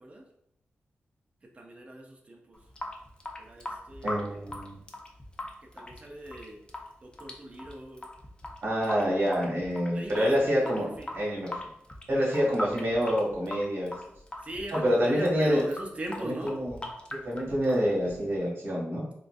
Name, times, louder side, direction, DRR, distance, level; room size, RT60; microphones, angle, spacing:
voice 1, 1.6-2.4 3.4-4.2 5.8-6.6 7.2-8.1 9.9-10.9 14.5-16.6, right 1 dB, 30° right, 1 dB, 0.5 m, -40 dB
Water tap faucet / Sink (filling or washing) / Drip, 2.5-18.5, left 1 dB, 20° left, 0.5 m, -41 dB
voice 2, 4.0-4.8 8.6-10.9 11.1-11.6 12.1-13.9 14.7-15.6 16.2-16.8 17.1-19.0, equal, 55° right, -6 dB, 1.4 m, -27 dB
3.7 x 2.5 x 2.3 m, 0.75 s
wide cardioid pair, 105°, 4 cm